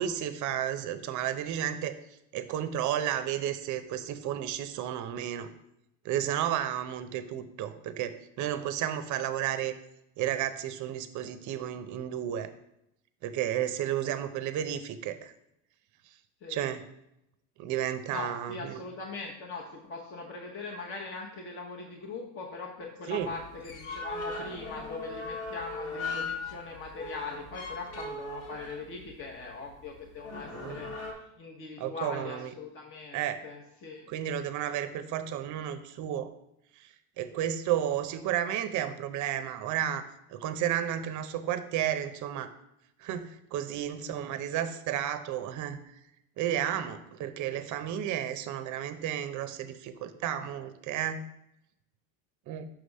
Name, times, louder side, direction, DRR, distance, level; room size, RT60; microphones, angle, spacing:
voice 1, 0.0-2.0 2.3-5.5 6.0-9.7 10.2-12.5 13.2-15.3 16.5-16.8 17.6-18.8 23.1-23.3 30.3-30.9 31.8-32.5 33.1-33.4 34.1-36.3 36.8-36.9 37.2-40.0 40.3-42.5 43.0-45.8 46.4-51.3 52.5-52.7, right 10 dB, 45° right, 10 dB, 0.6 m, -32 dB
voice 2, 18.1-30.9 31.4-34.1, left 3 dB, 30° left, -1 dB, 0.8 m, -41 dB
sound 1, 23.2-31.1, left 3 dB, 80° left, 1.5 m, -39 dB
5.9 x 3.3 x 5.3 m, 0.82 s
cardioid pair, 130°, 41 cm